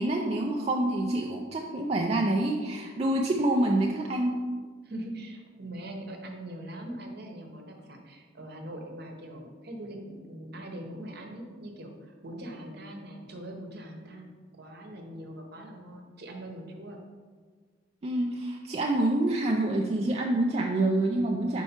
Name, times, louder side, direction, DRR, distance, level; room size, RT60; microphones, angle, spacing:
voice 1, 0.0-4.4 18.0-21.6, right 1 dB, 35° right, 0 dB, 0.4 m, -27 dB
voice 2, 4.8-17.0, right 1 dB, 55° right, 2 dB, 0.9 m, -42 dB
5.6 x 4.5 x 4.3 m, 1.5 s
head